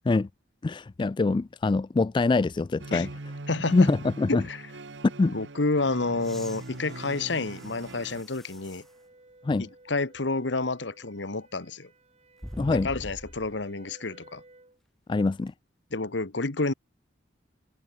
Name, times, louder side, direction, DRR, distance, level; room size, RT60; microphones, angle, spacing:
voice 1, 0.6-3.1 3.7-4.4 5.2-5.3 9.4-9.7 12.6-12.9 15.1-15.5, left 3 dB, 25° left, 0.3 m, -24 dB
sound 1, 2.8-8.2, right 2 dB, 85° right, 1.2 m, -41 dB
voice 2, 3.5-3.9 4.3-4.6 5.3-8.8 9.6-11.9 12.7-14.4 15.9-16.7, left 3 dB, 85° left, 1.5 m, -29 dB
sound 2, 4.9-14.8, right 2 dB, 35° right, 7.0 m, -58 dB
sound 3, 6.2-8.9 9.6-9.7 12.4-13.6 15.5-15.6, equal, ahead, 2.4 m, -44 dB
head